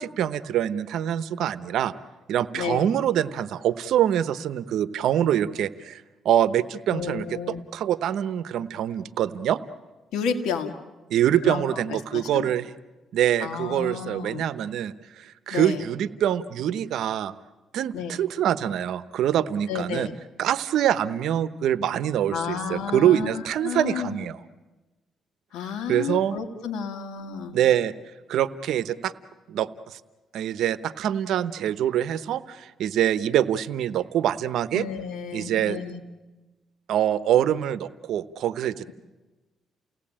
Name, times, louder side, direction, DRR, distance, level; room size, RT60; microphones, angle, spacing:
voice 1, 0.0-1.9 2.3-9.6 11.1-12.7 13.1-17.3 17.7-20.1 20.4-24.4 25.9-26.4 27.5-27.9 28.3-29.1 29.5-30.0 30.3-34.8 35.3-35.8 36.9-38.9, right 10 dB, 75° right, 15 dB, 0.9 m, -25 dB
voice 2, 2.5-2.9 6.9-7.6 10.1-10.8 11.4-12.5 13.4-14.5 15.5-15.8 17.9-18.2 19.7-20.1 22.3-24.2 25.5-27.6 34.7-36.0, left 6 dB, 85° left, 6 dB, 2.2 m, -31 dB
30.0 x 17.5 x 8.8 m, 1.2 s
cardioid pair, 90°, 0 cm